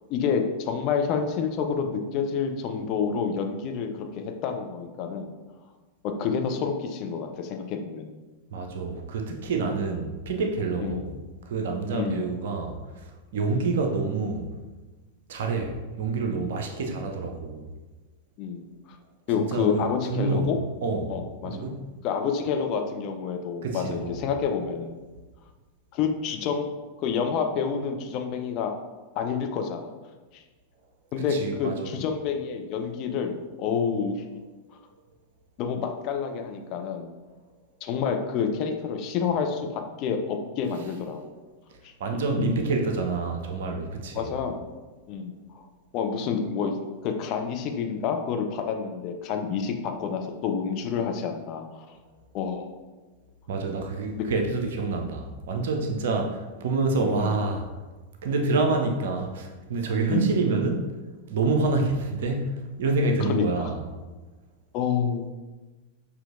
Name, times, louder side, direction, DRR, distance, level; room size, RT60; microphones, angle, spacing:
voice 1, 0.1-5.3 6.0-8.2 10.8-11.0 11.9-12.3 13.5-13.7 18.4-18.6 18.9-19.0 19.3-20.6 21.1-21.6 22.0-25.0 25.9-26.7 27.0-28.7 29.2-29.9 30.3-30.4 31.1-34.2 35.6-37.1 37.8-41.3 41.8-41.9 44.1-44.7 45.1-45.6 45.9-46.7 47.0-51.9 52.3-52.7 57.1-57.3 60.1-60.3 63.2-63.7 64.7-65.3, left 6 dB, 40° left, 4 dB, 0.5 m, -28 dB
voice 2, 8.5-11.1 11.5-13.0 13.3-14.5 15.3-17.7 19.4-20.5 20.8-21.2 21.4-21.9 23.6-24.3 31.3-32.0 42.0-44.3 53.5-57.7 58.2-60.9 61.3-63.8, right 3 dB, 60° right, 3 dB, 0.5 m, -27 dB
6.0 x 2.8 x 2.5 m, 1.2 s
figure-of-eight pair, 90°, 0 cm